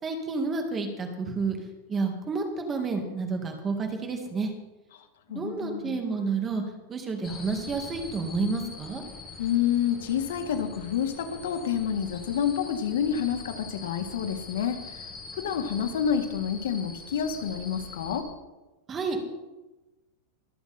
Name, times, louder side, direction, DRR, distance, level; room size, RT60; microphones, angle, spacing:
voice 1, 0.0-1.6 1.9-4.5 5.3-6.6 6.9-9.0 18.9-19.2, right 4 dB, 20° right, 4 dB, 2.1 m, -30 dB
voice 2, 5.3-6.0 9.4-15.1 15.4-18.3, left 8 dB, 85° left, 7 dB, 1.7 m, -28 dB
sound 1, 7.2-18.2, left 3 dB, 20° left, 1.9 m, -43 dB
23.0 x 7.8 x 4.3 m, 1.1 s
supercardioid pair, 155°, 0 cm